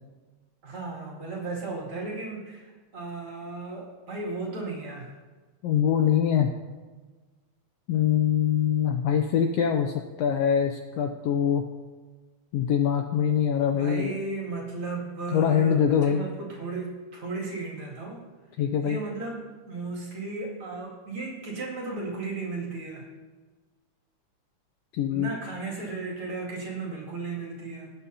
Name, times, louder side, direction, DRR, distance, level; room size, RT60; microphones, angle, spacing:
voice 1, 0.6-5.1 13.7-18.3 18.8-23.1 25.1-27.9, right 3 dB, 45° right, -4 dB, 3.1 m, -35 dB
voice 2, 5.6-6.5 7.9-11.6 12.5-14.2 15.3-16.2 18.6-19.0 24.9-25.3, left 8 dB, 85° left, 5 dB, 1.4 m, -23 dB
18.0 x 8.1 x 2.8 m, 1.3 s
omnidirectional pair, 3.4 m